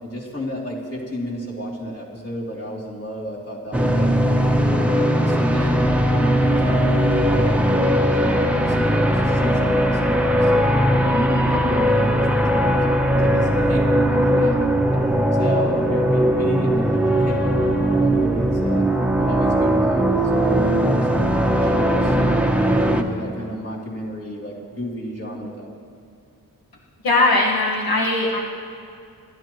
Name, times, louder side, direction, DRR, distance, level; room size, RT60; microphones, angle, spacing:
voice 1, 0.0-4.1 4.6-5.8 6.1-10.8 11.1-18.8 19.2-21.3 21.6-25.7, equal, 40° left, -4 dB, 3.1 m, -31 dB
sound 1, 3.7-23.0, equal, 5° right, 0.9 m, -19 dB
voice 2, 27.0-28.4, left 2 dB, 80° left, -4 dB, 1.7 m, -19 dB
27.5 x 12.0 x 3.1 m, 2.4 s
wide cardioid pair, 115°, 35 cm